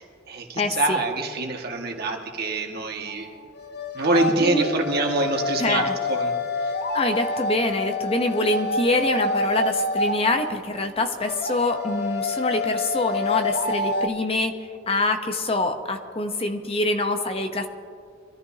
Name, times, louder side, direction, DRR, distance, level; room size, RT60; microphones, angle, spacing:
voice 1, 0.0-3.3 3.9-6.3 6.6-6.7, right 2 dB, 55° right, 1 dB, 1.8 m, -25 dB
voice 2, 0.6-1.0 4.4-4.7 5.6-6.0 6.9-17.7, left 2 dB, 30° left, 6 dB, 0.9 m, -25 dB
sound 1, 3.1-14.1, left 2 dB, 55° left, 0.8 m, -28 dB
24.5 x 14.0 x 2.8 m, 2.3 s
head